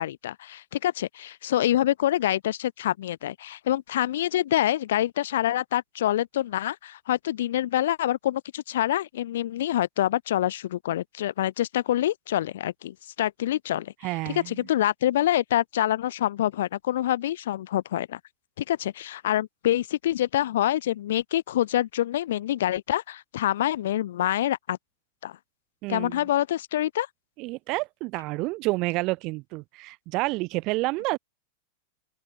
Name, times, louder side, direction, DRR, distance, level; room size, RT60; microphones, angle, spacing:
voice 1, 0.0-13.9 14.3-18.2 18.6-24.8 25.2-25.4 25.9-27.1, left 12 dB, 60° left, 0.6 m, -26 dB
voice 2, 14.0-14.5 25.8-26.2 27.4-31.2, right 23 dB, 40° right, 0.7 m, -29 dB
open air
figure-of-eight pair, 90°, 0 cm